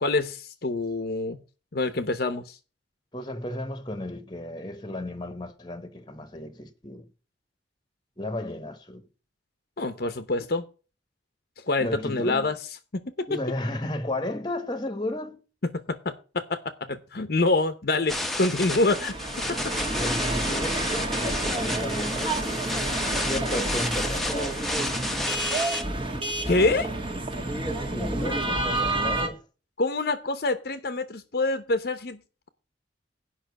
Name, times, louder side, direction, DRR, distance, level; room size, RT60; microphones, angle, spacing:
voice 1, 0.0-1.4 1.7-2.6 9.8-10.7 11.6-12.5 12.9-13.3 15.7-16.6 16.9-19.1 26.5-26.9 29.8-32.2, left 2 dB, 55° left, 0.8 m, -26 dB
voice 2, 3.1-7.1 8.2-9.0 11.8-12.5 13.3-15.4 19.9-20.9 21.1-22.5 23.2-24.6 27.9-29.4, left 1 dB, 25° left, 1.2 m, -33 dB
sound 1, 18.1-25.8, left 1 dB, ahead, 1.0 m, -31 dB
sound 2, 18.5-29.3, right 2 dB, 30° right, 1.6 m, -30 dB
8.9 x 5.6 x 8.2 m
head